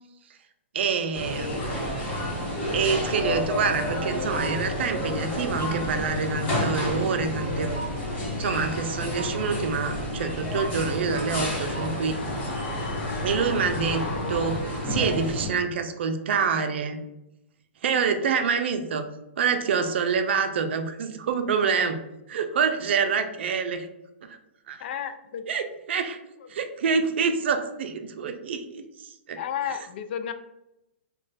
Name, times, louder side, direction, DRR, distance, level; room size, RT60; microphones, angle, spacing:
voice 1, 0.7-1.9 2.7-7.8 8.4-12.2 13.2-17.0 17.8-19.1 19.4-22.0 22.3-23.9 24.2-24.4 24.7-24.8 25.5-26.2 26.5-28.8 29.3-29.4, right 5 dB, 70° right, 8 dB, 0.5 m, -26 dB
sound 1, 1.1-15.5, left 1 dB, 30° left, 1.4 m, -30 dB
sound 2, 10.4-15.6 15.9-16.0, left 3 dB, 80° left, 0.7 m, -39 dB
voice 2, 24.8-25.5 26.4-26.5 29.4-30.3, left 9 dB, 60° left, 10 dB, 0.4 m, -32 dB
3.0 x 2.3 x 4.0 m, 0.89 s
hypercardioid pair, 135°, 6 cm